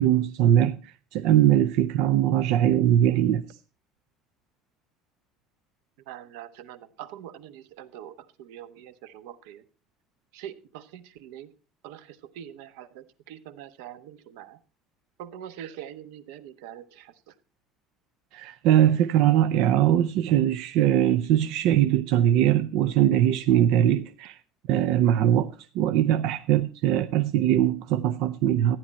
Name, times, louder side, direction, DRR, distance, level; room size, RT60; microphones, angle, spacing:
voice 1, 0.0-3.4 18.3-24.4 24.7-28.8, right 11 dB, 60° right, 0.6 m, -21 dB
voice 2, 6.1-9.6 10.3-11.5 11.8-14.6 15.2-17.3 21.3-21.4, right 10 dB, 85° right, 1.1 m, -43 dB
14.5 x 10.0 x 4.2 m
cardioid pair, 180°, 0 cm